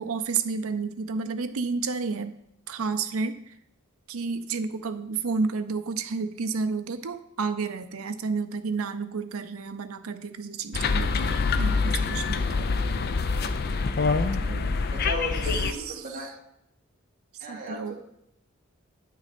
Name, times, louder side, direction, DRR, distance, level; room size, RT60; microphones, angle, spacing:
voice 1, 0.0-2.4 2.7-3.6 4.1-12.7 14.4-14.8 15.5-15.9 17.5-18.0, right 4 dB, 75° right, 9 dB, 0.6 m, -31 dB
sound 1, 10.7-15.7, left 4 dB, 45° left, 0.4 m, -25 dB
voice 2, 14.9-16.3 17.4-18.0, left 1 dB, 35° right, -3 dB, 2.0 m, -35 dB
9.2 x 6.0 x 4.2 m, 0.77 s
head